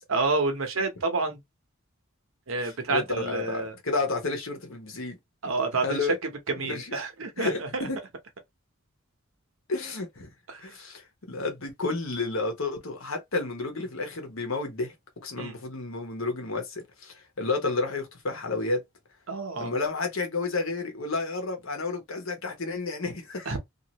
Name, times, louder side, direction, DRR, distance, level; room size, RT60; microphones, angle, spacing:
voice 1, 0.1-1.4 2.5-3.7 5.4-6.0 6.5-7.8 10.5-10.6 15.4-15.6 19.3-19.7 23.5-23.6, right 3 dB, 80° right, 0.9 m, -29 dB
voice 2, 2.6-5.2 5.8-6.2 6.6-7.0 7.4-8.0 9.7-10.3 10.6-14.9 15.2-18.8 19.6-23.6, left 3 dB, 75° left, 1.0 m, -31 dB
2.7 x 2.5 x 2.9 m
head